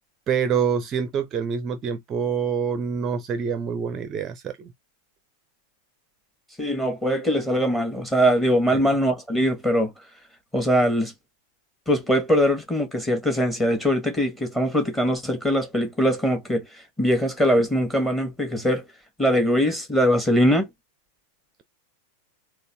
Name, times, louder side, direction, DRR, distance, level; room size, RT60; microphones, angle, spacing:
voice 1, 0.3-4.7 8.7-8.8, right 6 dB, 30° right, 0.5 m, -26 dB
voice 2, 6.6-9.9 10.5-11.1 11.9-18.8 19.2-20.7, equal, 10° left, 1.3 m, -22 dB
4.0 x 2.4 x 3.2 m
figure-of-eight pair, 90°, 0 cm